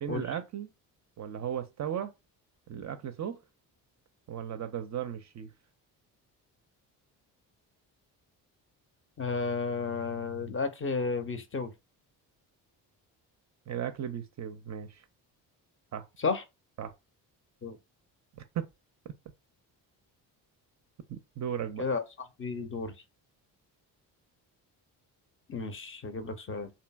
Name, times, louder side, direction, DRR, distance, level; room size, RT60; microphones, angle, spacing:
voice 1, 0.0-0.7 1.2-2.1 2.7-3.4 4.3-5.5 13.7-15.0 15.9-16.1 16.8-16.9 18.4-18.7 21.1-21.8, right 9 dB, 35° right, 0.4 m, -36 dB
voice 2, 9.2-11.7 16.2-16.4 17.6-17.8 21.8-22.0 22.4-22.9 25.5-26.7, left 4 dB, 25° left, 0.5 m, -32 dB
2.7 x 2.5 x 2.3 m
hypercardioid pair, 50°, 49 cm